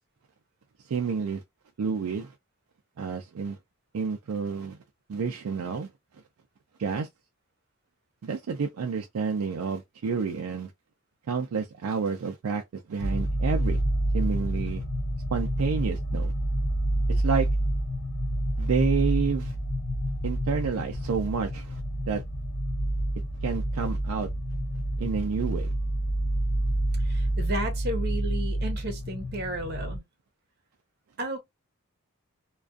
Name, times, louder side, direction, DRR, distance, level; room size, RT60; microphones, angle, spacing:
voice 1, 0.8-1.4 1.8-2.3 3.0-3.6 3.9-4.8 5.1-5.9 6.8-7.1 8.2-10.7 11.3-13.8 14.1-14.8 15.3-16.3 17.1-17.5 18.6-19.6 20.2-21.8 22.1-22.2 23.4-24.3 25.0-25.7, right 5 dB, 75° right, 0.4 m, -29 dB
sound 1, 13.0-30.0, right 1 dB, 60° left, 0.5 m, -28 dB
voice 2, 27.0-30.0 31.2-31.4, right 1 dB, 45° right, 0.8 m, -33 dB
2.4 x 2.3 x 2.3 m
head